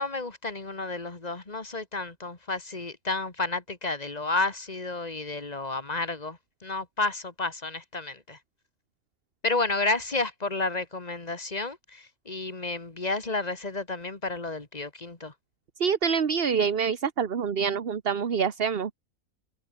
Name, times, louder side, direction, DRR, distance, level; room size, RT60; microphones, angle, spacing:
voice 1, 0.0-8.4 9.4-15.3, left 3 dB, 25° left, 2.3 m, -31 dB
voice 2, 15.8-18.9, right 6 dB, 45° right, 1.2 m, -26 dB
omnidirectional pair, 1.5 m